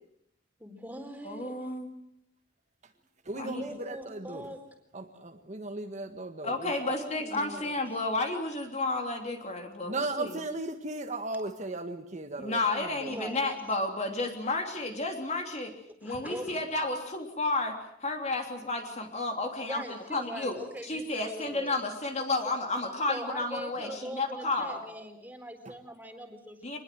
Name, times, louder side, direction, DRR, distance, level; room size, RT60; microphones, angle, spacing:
voice 1, 0.6-1.7 3.5-4.6 6.8-7.8 13.1-13.6 16.0-16.6 19.6-21.8 22.4-26.8, right 1 dB, 10° right, 5 dB, 4.0 m, -42 dB
voice 2, 1.2-1.9 3.3-3.6 6.4-10.4 12.4-15.7 16.0-20.5 20.8-24.8 26.6-26.8, left 2 dB, 35° left, 4 dB, 3.4 m, -32 dB
voice 3, 3.2-4.5 4.9-6.7 9.8-13.2, right 2 dB, 35° right, 6 dB, 1.6 m, -36 dB
26.0 x 20.5 x 7.8 m, 0.76 s
head